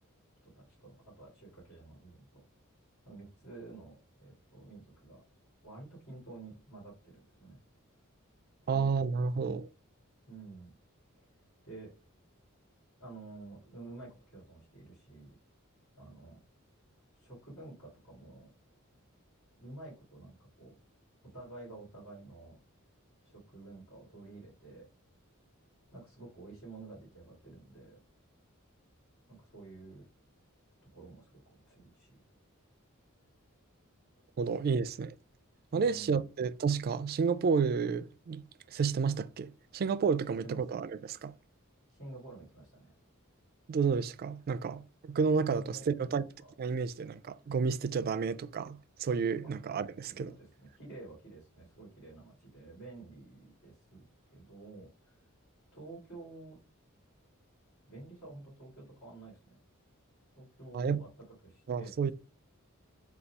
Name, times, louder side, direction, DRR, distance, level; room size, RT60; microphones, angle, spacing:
voice 1, 0.4-2.4 3.0-5.2 5.6-7.6 8.6-8.9 9.4-9.6 10.3-10.8 11.1-11.2 11.6-11.9 13.0-15.4 16.0-16.4 17.1-18.5 19.5-20.7 21.2-22.6 23.2-24.9 25.9-28.0 29.3-30.1 30.9-32.2 34.4-34.9 35.7-36.3 40.3-40.6 41.9-42.9 45.5-46.5 49.4-49.5 50.1-55.2 55.7-56.6 57.9-59.6 60.4-61.1 61.4-62.1, right 2 dB, 75° left, 2.2 m, -50 dB
voice 2, 8.7-9.7 34.4-35.1 35.7-41.3 43.7-46.3 46.6-50.3 60.7-61.0 61.7-62.1, right 5 dB, 45° right, 0.3 m, -31 dB
4.0 x 2.3 x 4.5 m
head